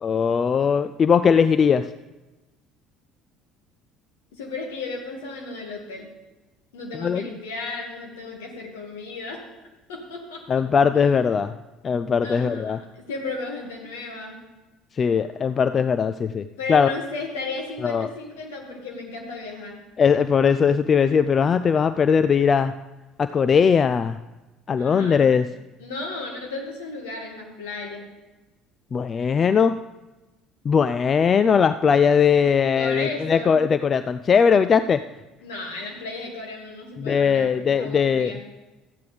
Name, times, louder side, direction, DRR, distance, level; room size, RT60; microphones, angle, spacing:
voice 1, 0.0-1.9 7.0-7.2 10.5-11.5 11.8-12.8 15.0-16.9 17.8-18.1 20.0-22.7 23.2-24.2 24.7-25.5 28.9-29.8 30.7-35.0 37.0-38.3, left 6 dB, 40° left, 11 dB, 0.3 m, -20 dB
voice 2, 4.4-6.1 6.7-9.4 9.9-10.6 10.9-11.2 12.2-14.4 16.6-19.8 24.8-25.3 25.8-28.1 32.7-33.6 35.4-38.4, left 3 dB, 75° left, 1 dB, 2.0 m, -34 dB
14.0 x 9.1 x 3.4 m, 1.1 s
hypercardioid pair, 60°, 0 cm